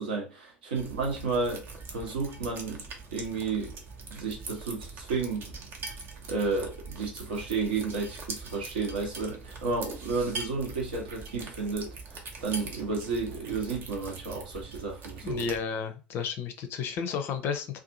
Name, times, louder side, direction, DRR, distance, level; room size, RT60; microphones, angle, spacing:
voice 1, 0.0-2.8 3.1-3.8 4.1-5.5 6.3-15.5, right 4 dB, 70° right, 0.9 m, -32 dB
sound 1, 0.7-15.6, right 4 dB, 45° right, 0.7 m, -42 dB
voice 2, 15.2-17.8, left 6 dB, 45° left, 0.5 m, -32 dB
2.5 x 2.3 x 2.6 m
figure-of-eight pair, 70°, 5 cm